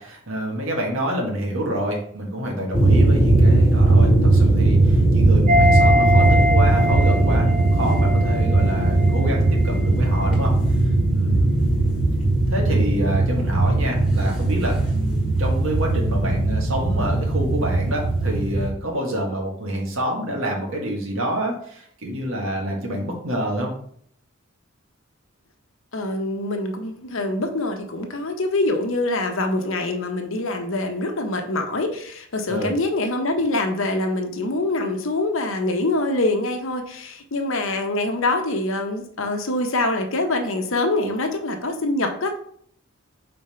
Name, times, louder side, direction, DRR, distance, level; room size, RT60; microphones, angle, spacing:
voice 1, 0.0-11.5 12.5-23.7 32.5-32.8, equal, 70° right, -1 dB, 1.8 m, -27 dB
sound 1, 2.7-18.7, right 2 dB, 5° right, 1.4 m, -18 dB
sound 2, 5.5-9.4 9.7-9.8, equal, 40° right, 0.9 m, -23 dB
voice 2, 25.9-42.4, left 2 dB, 70° left, 4 dB, 1.0 m, -24 dB
5.4 x 4.3 x 4.4 m, 0.63 s
head